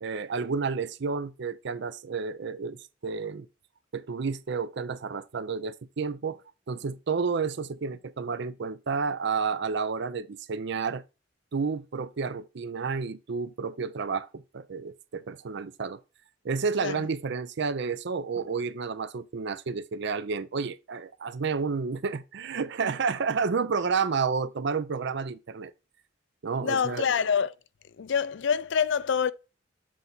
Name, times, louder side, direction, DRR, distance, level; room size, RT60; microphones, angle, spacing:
voice 1, 0.0-3.5 3.9-6.4 6.7-11.0 11.5-16.0 16.4-25.7 26.4-27.1, right 5 dB, 60° right, 0.5 m, -30 dB
voice 2, 26.6-27.5 28.0-29.3, left 6 dB, 65° left, 0.4 m, -26 dB
7.6 x 4.0 x 3.9 m
head